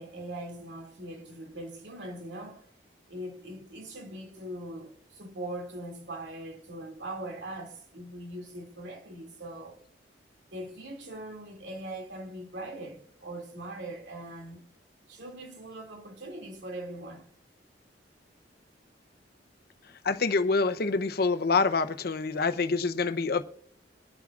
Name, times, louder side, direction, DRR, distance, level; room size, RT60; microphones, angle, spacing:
voice 1, 0.0-2.7 3.1-9.8 10.5-14.7 15.1-17.3, right 1 dB, 75° right, 2.5 m, -41 dB
voice 2, 20.0-23.4, left 4 dB, 60° left, 0.8 m, -26 dB
24.5 x 9.4 x 2.5 m
head